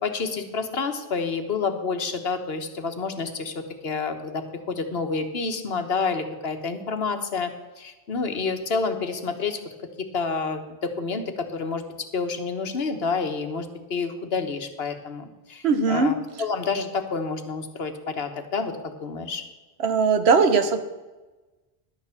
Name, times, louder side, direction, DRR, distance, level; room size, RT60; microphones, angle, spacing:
voice 1, 0.0-9.6 10.0-11.8 12.1-19.4, left 4 dB, 70° left, 7 dB, 1.4 m, -29 dB
voice 2, 15.6-16.1 19.8-20.8, right 5 dB, 80° right, 9 dB, 1.3 m, -19 dB
11.5 x 6.8 x 7.1 m, 1.2 s
omnidirectional pair, 1.1 m